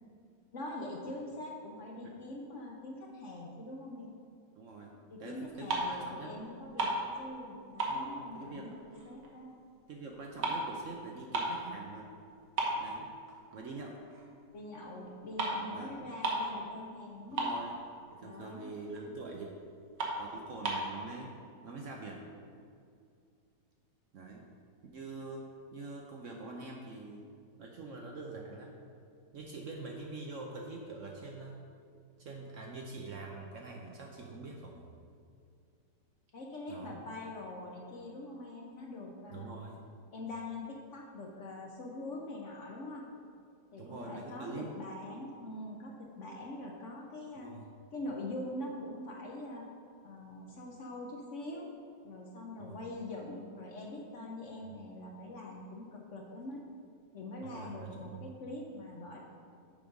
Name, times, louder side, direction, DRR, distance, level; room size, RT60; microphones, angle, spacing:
voice 1, 0.5-4.2 5.1-9.6 14.5-17.6 18.2-18.7 36.3-39.5 40.1-43.1 43.7-47.5 47.9-49.7 50.0-51.7 52.0-56.6 57.1-59.2, left 1 dB, 55° left, -1 dB, 0.9 m, -43 dB
voice 2, 4.6-4.9 5.2-6.4 7.8-8.7 9.9-12.1 12.8-13.1 13.5-14.0 15.7-16.0 17.3-17.8 18.1-19.5 20.0-21.3 21.6-22.2 24.1-24.4 24.9-25.4 25.7-27.2 27.6-28.7 29.3-31.6 32.2-34.9 36.7-37.0 39.3-39.8 43.8-44.7 47.3-47.7 52.6-52.8 54.6-54.8 57.4-58.2, right 3 dB, 60° right, 0 dB, 0.9 m, -45 dB
sound 1, 5.7-6.1 6.4-7.5 7.8-9.3 9.6-11.7 12.1-12.2 12.6-13.6 14.1-14.3 15.1-15.2 15.4-15.6 15.9-16.0 16.2-16.6 16.9-17.0 17.2-18.0 18.4-18.5 19.0-19.1 19.5-19.6 20.0-20.9, right 2 dB, 85° right, 1.7 m, -34 dB
6.9 x 4.9 x 5.2 m, 2.3 s
omnidirectional pair, 1.8 m